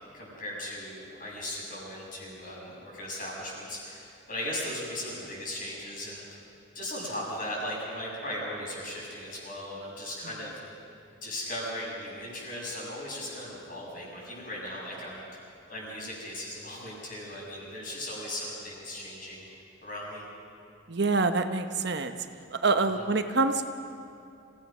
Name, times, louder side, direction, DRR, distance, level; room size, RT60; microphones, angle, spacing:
voice 1, 0.1-6.4 6.7-10.6 11.2-15.2 15.7-19.5 19.8-20.2 23.0-23.1, left 1 dB, 45° left, -4 dB, 7.3 m, -37 dB
voice 2, 20.9-22.1 22.5-23.6, right 3 dB, 55° right, 7 dB, 1.0 m, -26 dB
27.5 x 17.0 x 6.2 m, 2.6 s
head